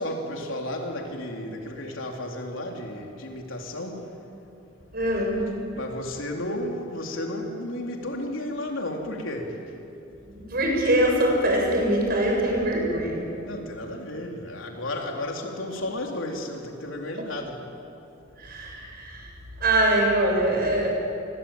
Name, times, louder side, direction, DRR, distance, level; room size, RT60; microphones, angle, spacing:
voice 1, 0.0-4.0 5.7-9.6 13.4-17.6, left 1 dB, 85° left, 1 dB, 3.8 m, -33 dB
voice 2, 4.9-5.4 10.3-13.2 18.4-19.3 19.6-20.9, right 1 dB, 50° right, 0 dB, 7.4 m, -23 dB
27.0 x 22.5 x 8.9 m, 2.7 s
head